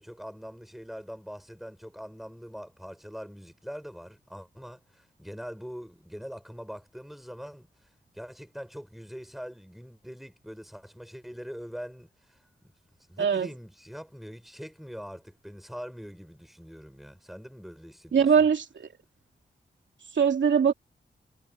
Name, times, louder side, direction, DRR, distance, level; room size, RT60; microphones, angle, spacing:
voice 1, 0.0-12.5 13.1-18.5, equal, ahead, 7.1 m, -43 dB
voice 2, 13.2-13.5 18.1-18.9 20.1-20.7, right 7 dB, 75° right, 2.9 m, -22 dB
cardioid pair, 50°, 19 cm